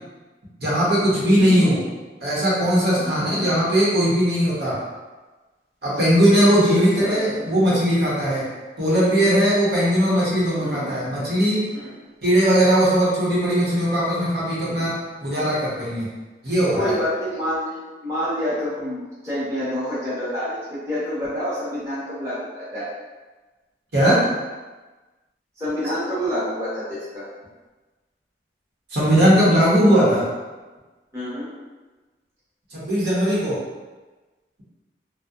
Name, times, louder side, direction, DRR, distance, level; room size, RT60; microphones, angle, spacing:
voice 1, 0.6-1.8 2.2-4.8 5.8-8.5 8.8-11.6 12.2-14.9 15.2-16.1 16.4-16.9 23.9-24.2 28.9-30.2 32.7-33.6, equal, 65° right, -8 dB, 0.8 m, -19 dB
voice 2, 6.7-7.2 10.6-10.9 11.7-11.9 16.7-22.9 25.6-27.3 31.1-31.5, equal, 15° right, -12 dB, 0.8 m, -28 dB
2.6 x 2.1 x 2.3 m, 1.2 s
head